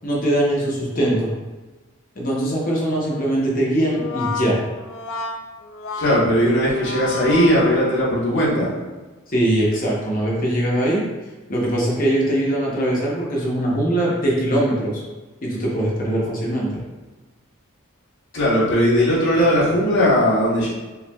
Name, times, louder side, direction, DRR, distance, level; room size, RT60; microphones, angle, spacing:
voice 1, 0.0-1.3 2.2-4.6 9.3-11.0 11.5-15.0 15.4-16.8, right 1 dB, 40° left, -4 dB, 0.9 m, -21 dB
Brass instrument, 3.8-8.4, left 4 dB, 70° left, 0.4 m, -31 dB
voice 2, 6.0-8.7 18.3-20.7, equal, 55° left, -7 dB, 1.2 m, -18 dB
5.5 x 2.5 x 2.3 m, 1.2 s
head